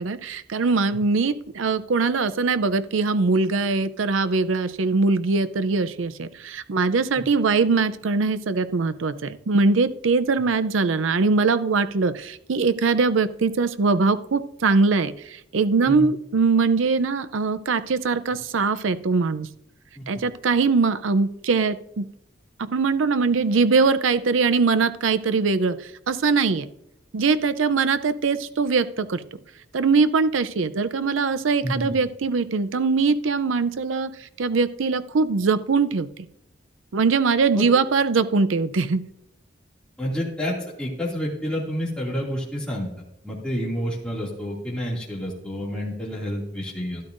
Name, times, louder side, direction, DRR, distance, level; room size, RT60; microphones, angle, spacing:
voice 1, 0.0-19.5 20.1-22.1 22.6-25.8 26.1-26.7 27.1-29.2 29.7-34.1 34.4-36.1 36.9-39.0, right 4 dB, 85° right, 12 dB, 0.5 m, -22 dB
voice 2, 20.0-20.3 31.6-32.0 37.5-37.7 40.0-42.9 43.2-47.0, equal, 5° left, -5 dB, 2.3 m, -29 dB
12.5 x 12.0 x 2.6 m, 0.78 s
head